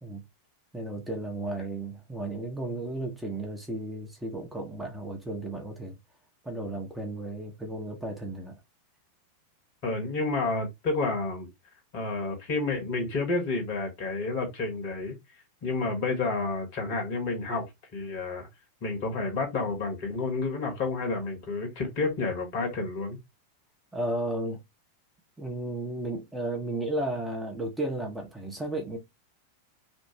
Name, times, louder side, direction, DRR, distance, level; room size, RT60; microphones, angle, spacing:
voice 1, 0.7-5.9 6.4-8.6 23.9-24.6 25.4-29.0, right 1 dB, 5° right, 1.2 m, -34 dB
voice 2, 9.8-11.5 11.9-15.2 15.6-17.7 17.9-18.5 18.8-23.2, left 3 dB, 45° left, 1.9 m, -30 dB
3.5 x 2.5 x 4.4 m
figure-of-eight pair, 90°, 0 cm